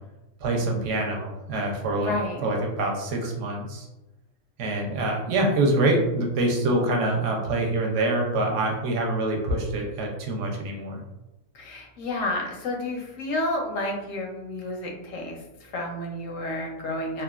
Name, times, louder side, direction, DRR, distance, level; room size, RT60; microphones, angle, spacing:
voice 1, 0.4-2.1 2.4-3.9 4.6-11.0, right 2 dB, 70° right, 1 dB, 0.9 m, -25 dB
voice 2, 2.0-2.4 11.5-17.2, left 1 dB, 85° left, 1 dB, 1.0 m, -31 dB
2.8 x 2.2 x 2.3 m, 0.99 s
omnidirectional pair, 1.4 m